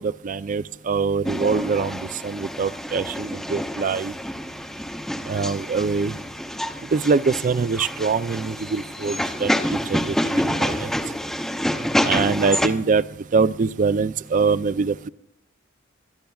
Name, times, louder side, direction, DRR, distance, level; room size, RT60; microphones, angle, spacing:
voice 1, 0.0-4.1 5.3-6.1 6.9-10.9 12.0-13.0 13.3-15.1, right 5 dB, 40° right, 16 dB, 0.4 m, -23 dB
sound 1, 1.2-12.7, equal, ahead, 0.6 m, -27 dB
22.5 x 12.5 x 2.4 m, 0.73 s
head